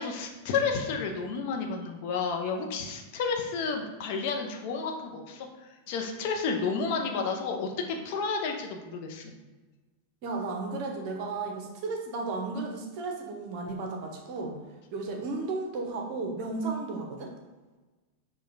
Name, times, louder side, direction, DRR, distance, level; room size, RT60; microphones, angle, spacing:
voice 1, 0.0-5.5 5.9-9.3, left 5 dB, 50° left, 2 dB, 0.5 m, -31 dB
voice 2, 10.2-14.6 14.9-17.3, right 3 dB, 45° right, 2 dB, 0.7 m, -34 dB
6.3 x 2.2 x 2.6 m, 1.2 s
figure-of-eight pair, 90°, 0 cm